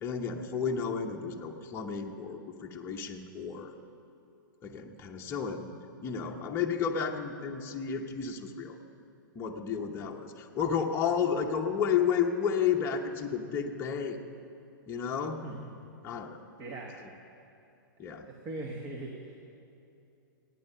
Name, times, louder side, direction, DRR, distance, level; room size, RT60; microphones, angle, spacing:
voice 1, 0.0-3.7 4.6-5.7 6.0-8.8 9.3-14.2 14.9-15.4 16.0-16.4 17.0-17.1 18.0-18.3, left 7 dB, 20° left, 0 dB, 0.9 m, -32 dB
voice 2, 16.6-16.9 18.2-19.4, right 2 dB, 30° right, 1 dB, 1.3 m, -40 dB
17.5 x 9.1 x 5.6 m, 2.7 s
hypercardioid pair, 135°, 11 cm